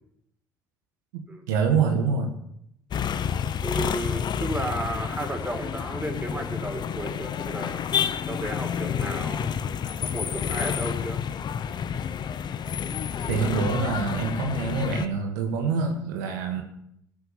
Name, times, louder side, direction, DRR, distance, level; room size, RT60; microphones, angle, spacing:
voice 1, 1.1-2.4 13.3-16.6, right 5 dB, 85° right, 4 dB, 1.5 m, -26 dB
sound 1, 2.9-15.1, left 8 dB, 50° left, 1.0 m, -29 dB
voice 2, 3.6-7.8 8.3-9.5 10.0-11.2, right 1 dB, 15° right, 2 dB, 4.4 m, -33 dB
15.5 x 8.0 x 7.3 m, 0.74 s
hypercardioid pair, 65°, 10 cm